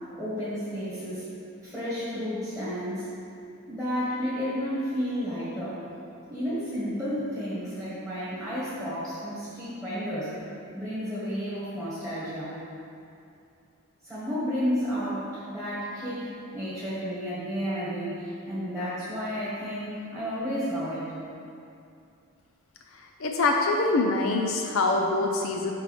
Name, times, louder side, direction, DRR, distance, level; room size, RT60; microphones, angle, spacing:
voice 1, 0.1-1.2 1.6-3.0 3.7-5.8 6.3-10.4 10.7-12.5 14.0-21.1, equal, ahead, -11 dB, 1.6 m, -32 dB
voice 2, 23.2-25.7, left 3 dB, 70° left, 2 dB, 0.5 m, -24 dB
5.5 x 4.7 x 6.0 m, 2.6 s
head